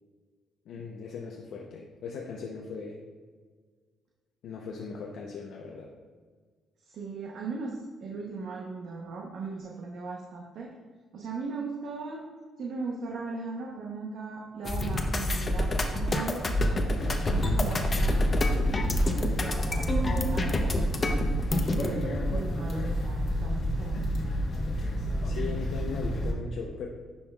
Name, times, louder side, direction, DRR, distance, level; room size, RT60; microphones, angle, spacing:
voice 1, 0.7-3.0 4.4-5.9 25.2-26.9, left 5 dB, 75° left, -1 dB, 0.7 m, -38 dB
voice 2, 6.8-10.7 11.1-12.2 12.6-18.2 18.7-21.2 21.7-24.2, right 4 dB, 70° right, -1 dB, 0.8 m, -38 dB
sound 1, 14.6-21.9, left 1 dB, 30° left, 0.7 m, -27 dB
sound 2, 16.9-26.3, equal, 55° left, 1.2 m, -30 dB
10.5 x 5.4 x 2.3 m, 1.5 s
cardioid pair, 120°, 0 cm